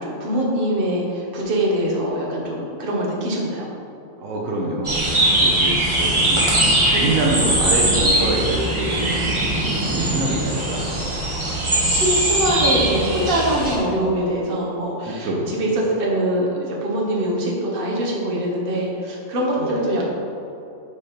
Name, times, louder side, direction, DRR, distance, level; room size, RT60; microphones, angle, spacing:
voice 1, 0.0-3.7 9.0-9.2 11.7-20.1, right 1 dB, 45° right, -3 dB, 1.2 m, -23 dB
voice 2, 4.2-6.5 6.9-9.0 9.4-11.1 15.1-15.7 19.6-20.0, right 2 dB, 75° right, -1 dB, 1.1 m, -26 dB
sound 1, 4.8-13.8, right 1 dB, 25° right, 1.1 m, -20 dB
5.4 x 4.1 x 5.1 m, 2.7 s
omnidirectional pair, 1.4 m